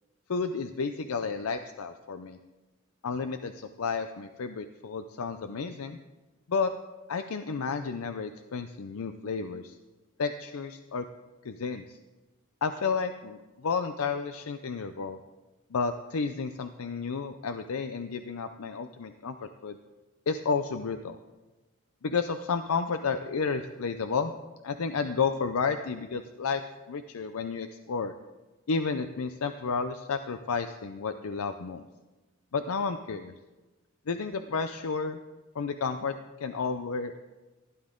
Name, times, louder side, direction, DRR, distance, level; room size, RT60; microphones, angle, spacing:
voice 1, 0.3-2.4 3.0-6.0 6.5-6.7 7.1-9.8 10.2-11.0 11.4-12.0 12.6-15.2 15.7-19.8 20.3-21.2 22.0-24.3 24.6-26.6 26.9-28.1 28.7-31.9 32.5-33.3 34.1-35.2 35.5-36.2 36.4-37.2, left 5 dB, 80° left, 9 dB, 0.5 m, -31 dB
15.0 x 11.0 x 3.8 m, 1.2 s
head